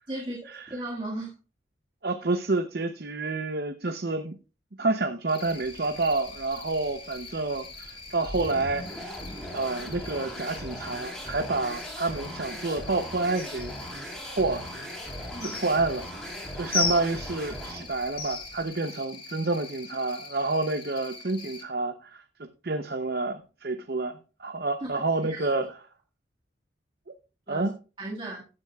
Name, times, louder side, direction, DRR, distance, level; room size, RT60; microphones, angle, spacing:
voice 1, 0.1-0.4 0.7-1.3 15.3-15.6 24.8-25.0 25.3-25.5 27.5-27.7 28.0-28.4, right 1 dB, 25° right, 1.9 m, -35 dB
voice 2, 2.0-4.4 4.8-9.1 9.5-13.7 14.4-14.6 15.4-16.1 16.5-25.7 27.5-27.7, right 3 dB, 55° right, 0.8 m, -29 dB
Cricket, 5.3-21.6, left 4 dB, 30° left, 1.6 m, -45 dB
sound 1, 5.4-18.7, left 4 dB, 55° left, 5.4 m, -40 dB
sound 2, 8.2-17.9, equal, 5° left, 3.6 m, -39 dB
15.0 x 9.7 x 2.4 m
head